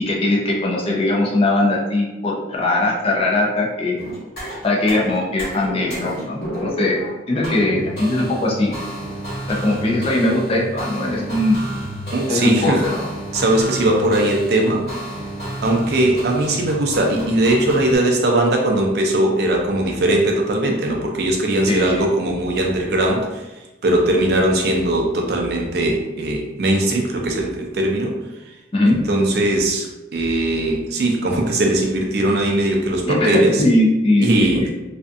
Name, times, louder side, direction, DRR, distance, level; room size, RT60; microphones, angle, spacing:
voice 1, 0.0-3.9 4.6-7.0 7.3-8.7 9.5-11.6 12.3-13.0 21.7-21.9 28.7-29.0 33.0-34.3 34.5-34.6, left 2 dB, 30° left, -3 dB, 0.4 m, -20 dB
sound 1, 4.0-18.0, right 1 dB, 50° left, 1.2 m, -31 dB
voice 2, 12.1-12.9 13.3-14.9 15.6-28.6 28.9-33.6 34.2-34.7, right 1 dB, 55° right, 1 dB, 0.4 m, -19 dB
2.5 x 2.2 x 2.5 m, 1.1 s
head